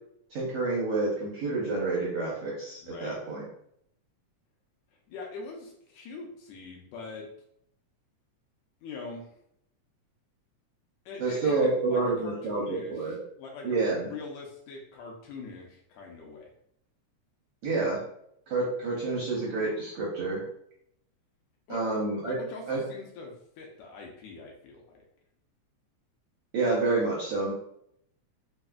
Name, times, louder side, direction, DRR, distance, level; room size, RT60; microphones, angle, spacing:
voice 1, 0.3-3.4 11.2-13.2 13.6-14.1 17.6-18.0 18.5-20.4 21.7-22.4 22.7-22.8 26.5-27.5, right 3 dB, 75° right, -5 dB, 1.4 m, -28 dB
voice 2, 2.8-3.2 5.1-7.3 8.8-9.3 11.0-16.5 21.7-22.0 22.2-25.0, left 4 dB, 80° left, 0 dB, 1.8 m, -43 dB
4.8 x 2.0 x 2.3 m, 0.71 s
omnidirectional pair, 3.5 m